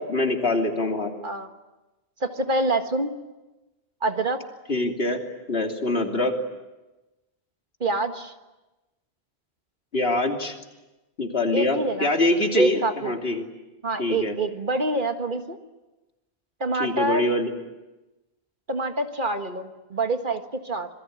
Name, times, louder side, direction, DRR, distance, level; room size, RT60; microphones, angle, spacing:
voice 1, 0.0-1.1 4.7-5.2 5.5-6.3 9.9-10.5 11.2-13.4 14.0-14.4 16.8-17.5, left 2 dB, 70° left, 3 dB, 3.2 m, -24 dB
voice 2, 2.2-3.1 4.0-4.4 7.8-8.3 11.5-12.1 12.6-13.1 13.8-15.6 16.6-17.3 18.7-20.9, right 2 dB, 50° right, 6 dB, 1.8 m, -26 dB
27.0 x 22.0 x 9.5 m, 1.1 s
omnidirectional pair, 1.1 m